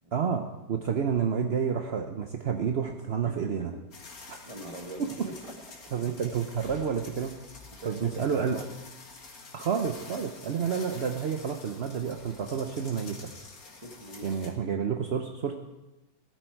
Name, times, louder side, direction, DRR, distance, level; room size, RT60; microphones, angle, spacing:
voice 1, 0.1-3.7 4.3-4.4 5.9-7.4 7.8-8.7 9.5-13.2 14.2-15.5, right 7 dB, 55° right, 4 dB, 0.7 m, -30 dB
voice 2, 3.2-3.8 4.4-5.4 7.7-8.7 13.8-14.3, right 2 dB, 20° right, 3 dB, 1.4 m, -42 dB
sound 1, 3.9-14.5, left 3 dB, 50° left, 2.2 m, -48 dB
15.5 x 12.5 x 4.6 m, 1.0 s
omnidirectional pair, 2.0 m